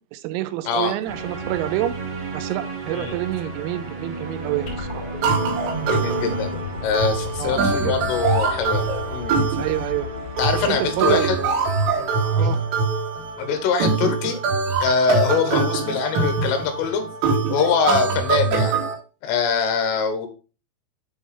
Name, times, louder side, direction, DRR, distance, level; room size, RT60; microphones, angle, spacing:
voice 1, 0.1-1.9 2.3-4.9 7.4-7.9 9.6-10.1 10.5-12.1 12.4-12.6 15.5-15.6, right 14 dB, 90° right, 12 dB, 3.4 m, -28 dB
sound 1, 1.0-12.6, right 2 dB, 45° right, 1.7 m, -34 dB
sound 2, 4.7-11.2, left 5 dB, 35° left, 3.9 m, -35 dB
sound 3, 5.2-18.9, right 4 dB, 70° right, 3.5 m, -23 dB
voice 2, 5.9-6.5 6.8-9.4 10.4-11.4 12.4-12.6 13.4-14.4 14.8-17.0 17.5-18.7 19.2-20.3, left 6 dB, 80° left, 7 dB, 3.7 m, -23 dB
10.0 x 4.6 x 3.4 m, 0.35 s
omnidirectional pair, 6.0 m